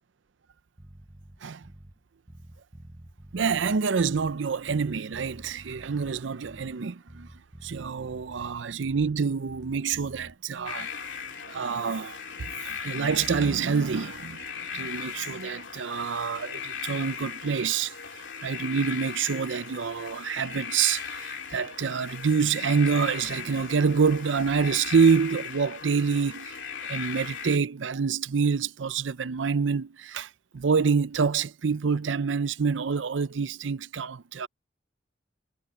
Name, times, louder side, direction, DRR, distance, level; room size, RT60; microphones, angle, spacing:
Bass guitar, 0.8-2.0 2.3-4.4 4.7-6.8 7.1-9.2 9.5-10.4, right 1 dB, 20° right, 0.8 m, -49 dB
voice 1, 3.3-7.3 7.6-10.9 11.5-14.5 14.7-17.9 18.4-26.6 26.8-34.5, right 5 dB, 85° right, 0.6 m, -27 dB
sound 1, 10.7-27.6, left 6 dB, 80° left, 2.6 m, -38 dB
head